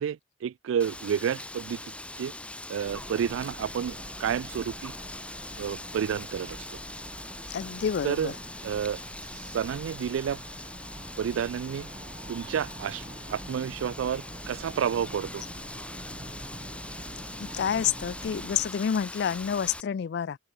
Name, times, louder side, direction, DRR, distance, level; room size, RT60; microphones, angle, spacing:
voice 1, 0.0-1.8 2.2-2.3 2.7-4.9 5.6-6.7 8.0-8.3 8.6-9.0 9.3-10.4 11.2-11.9 12.3-13.0 13.3-15.4, right 8 dB, 80° right, 0.3 m, -30 dB
Wind, 0.8-19.8, left 1 dB, 5° left, 2.9 m, -42 dB
sound 1, 2.8-18.7, right 1 dB, 30° right, 2.2 m, -45 dB
voice 2, 7.5-8.3 17.4-20.4, left 8 dB, 55° left, 0.3 m, -29 dB
open air
head